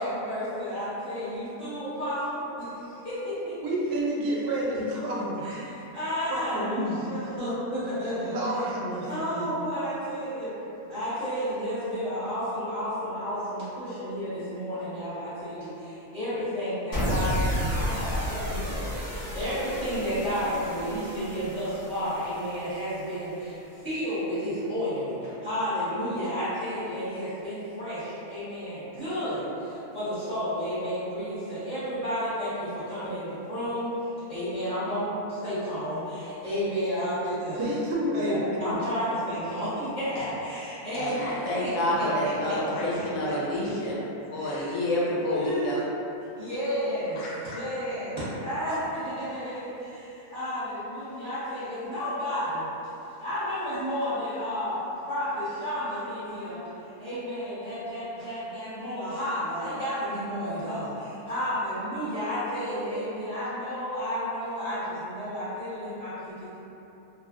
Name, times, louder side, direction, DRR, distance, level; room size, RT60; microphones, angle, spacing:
voice 1, 0.0-3.6 5.4-5.6 5.9-8.4 9.1-10.5 10.9-23.6 23.8-37.6 38.1-41.2 41.6-41.7 42.0-42.8 44.4-44.7 45.3-45.7 46.4-52.7 53.2-54.8 55.1-56.6 57.0-66.6, equal, 25° right, -16 dB, 1.0 m, -32 dB
voice 2, 3.6-5.4 6.3-7.0 8.3-9.1 9.3-9.5 37.5-38.8, right 1 dB, 75° right, -5 dB, 1.0 m, -29 dB
sound 1, 16.9-23.3, equal, 40° left, 0.8 m, -32 dB
voice 3, 40.9-44.0 44.3-45.8 47.2-47.3, left 1 dB, 70° left, -7 dB, 1.0 m, -28 dB
2.9 x 2.4 x 2.4 m, 2.9 s
omnidirectional pair, 1.6 m